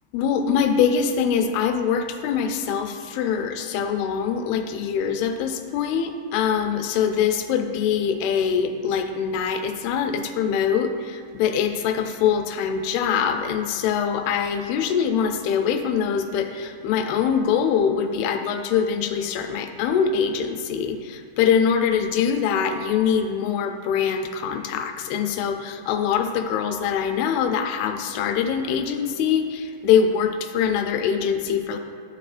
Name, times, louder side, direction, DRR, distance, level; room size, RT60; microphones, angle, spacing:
voice 1, 0.1-31.8, left 7 dB, 85° left, 6 dB, 2.5 m, -23 dB
11.0 x 6.6 x 2.5 m, 2.5 s
omnidirectional pair, 4.4 m